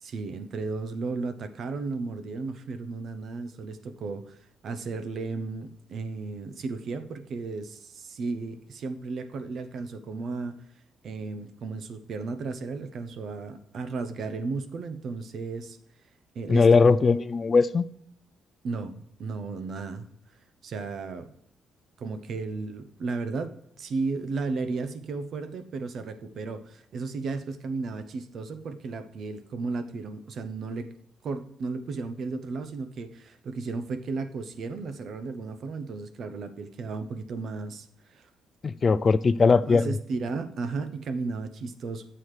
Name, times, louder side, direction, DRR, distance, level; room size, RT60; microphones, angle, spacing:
voice 1, 0.0-10.6 11.0-15.8 16.3-17.2 18.6-20.1 20.6-21.3 22.0-30.9 31.2-38.3 39.7-42.0, right 4 dB, 60° right, 0.7 m, -34 dB
voice 2, 16.5-17.9 38.6-39.9, left 4 dB, 40° left, 0.3 m, -20 dB
12.0 x 7.7 x 3.3 m
cardioid pair, 90°, 0 cm